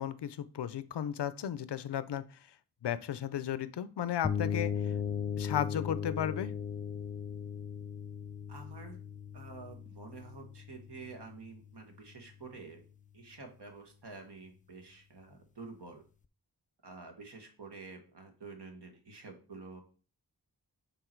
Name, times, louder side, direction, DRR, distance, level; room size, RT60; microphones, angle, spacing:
voice 1, 0.0-2.2 2.8-4.9 5.4-6.5, left 10 dB, 90° left, 15 dB, 0.5 m, -34 dB
sound 1, 4.2-12.0, left 7 dB, 20° left, 0.3 m, -37 dB
voice 2, 8.5-9.0 9.3-12.8 13.1-16.0 16.8-19.8, right 4 dB, 90° right, 3 dB, 1.5 m, -49 dB
6.9 x 3.8 x 4.5 m, 0.38 s
wide cardioid pair, 80°, 40 cm